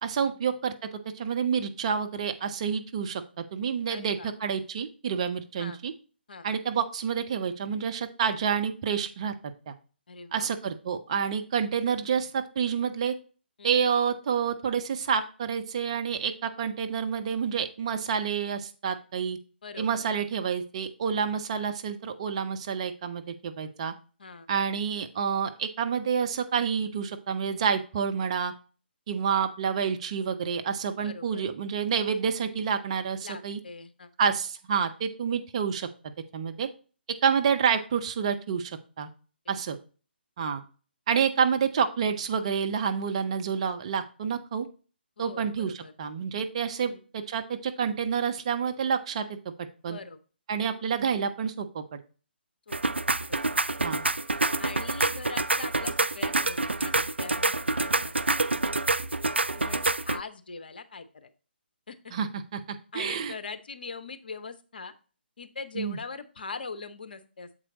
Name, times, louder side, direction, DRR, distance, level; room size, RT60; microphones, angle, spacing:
voice 1, 0.0-5.9 6.4-9.3 9.7-9.8 10.3-13.2 13.6-19.4 19.8-23.9 24.5-28.5 29.1-33.6 34.2-35.9 36.3-36.7 37.2-39.1 39.5-39.8 40.4-40.6 41.1-44.7 45.2-50.0 50.5-52.0 53.8-54.0 62.1-62.6 62.9-63.3 65.7-66.0, right 6 dB, 35° right, 6 dB, 0.7 m, -28 dB
voice 2, 3.9-4.3 5.6-5.8 6.3-6.5 10.1-10.5 13.6-13.8 19.6-20.0 24.2-24.5 31.0-31.4 33.2-34.1 39.4-39.5 45.2-45.9 46.8-47.0 49.9-50.2 50.6-50.8 52.7-52.8 53.3-53.4 54.6-58.1 59.5-61.3 61.9-62.1 62.9-64.9 65.4-67.5, left 4 dB, 55° left, 9 dB, 0.8 m, -41 dB
sound 1, 52.7-60.2, right 2 dB, 85° right, 0.4 m, -27 dB
7.5 x 4.5 x 3.9 m, 0.36 s
figure-of-eight pair, 140°, 6 cm